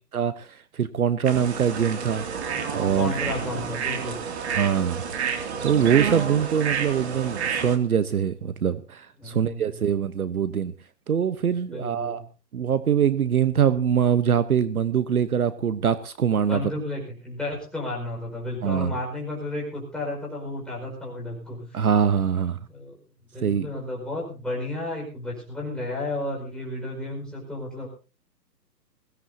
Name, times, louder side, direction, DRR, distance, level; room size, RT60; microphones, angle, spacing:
voice 1, 0.1-2.2 2.7-3.1 4.5-5.0 5.6-10.7 11.1-12.2 12.5-16.6 18.6-18.9 21.7-22.6 23.4-23.7, right 8 dB, 60° right, 13 dB, 1.1 m, -23 dB
sound 1, 1.2-7.8, right 6 dB, 40° right, 2.7 m, -29 dB
voice 2, 2.9-4.2 9.2-9.9 11.7-12.3 16.5-21.8 22.7-23.0 23.3-27.9, left 2 dB, ahead, -4 dB, 5.0 m, -33 dB
21.5 x 17.0 x 2.8 m, 0.33 s
hypercardioid pair, 150°, 50 cm